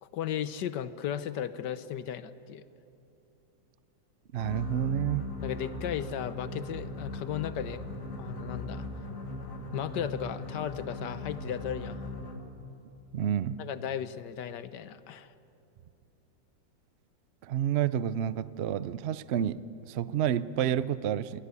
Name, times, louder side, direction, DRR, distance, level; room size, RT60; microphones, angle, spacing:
voice 1, 0.0-2.6 5.4-7.9 8.2-8.9 9.7-12.0 13.6-15.3, left 9 dB, 70° left, 13 dB, 1.4 m, -35 dB
sound 1, 4.3-12.6, left 2 dB, 45° left, 2.5 m, -39 dB
voice 2, 4.3-5.3 13.1-13.6 17.4-19.6 19.9-21.4, right 10 dB, 80° right, 16 dB, 0.5 m, -29 dB
27.5 x 21.5 x 8.4 m, 2.9 s
omnidirectional pair, 2.0 m